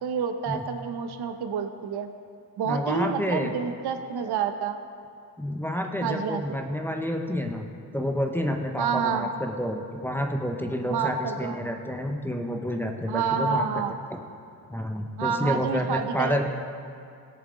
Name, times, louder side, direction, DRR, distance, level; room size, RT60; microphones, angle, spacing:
voice 1, 0.0-2.1 2.6-4.8 6.0-6.6 8.8-9.3 10.9-11.6 13.1-13.9 15.2-16.5, right 6 dB, 60° right, 7 dB, 0.9 m, -28 dB
voice 2, 2.7-3.5 5.4-7.6 7.9-13.8 14.7-16.5, equal, 5° left, 2 dB, 0.8 m, -29 dB
17.0 x 6.9 x 3.8 m, 2.4 s
cardioid pair, 95°, 44 cm